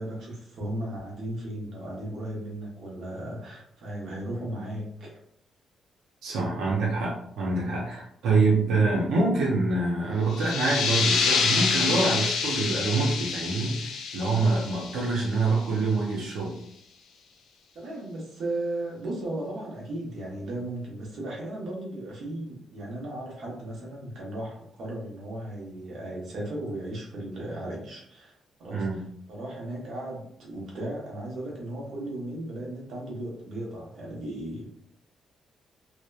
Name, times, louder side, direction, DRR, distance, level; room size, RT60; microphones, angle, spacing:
voice 1, 0.0-5.2 17.7-28.3 28.6-34.7, right 1 dB, 55° right, -3 dB, 0.8 m, -36 dB
voice 2, 6.2-16.6 28.7-29.0, right 3 dB, 80° right, -3 dB, 0.5 m, -25 dB
sound 1, 10.3-15.7, left 5 dB, 80° left, 0.3 m, -27 dB
2.8 x 2.1 x 2.2 m, 0.70 s
cardioid pair, 175°, 0 cm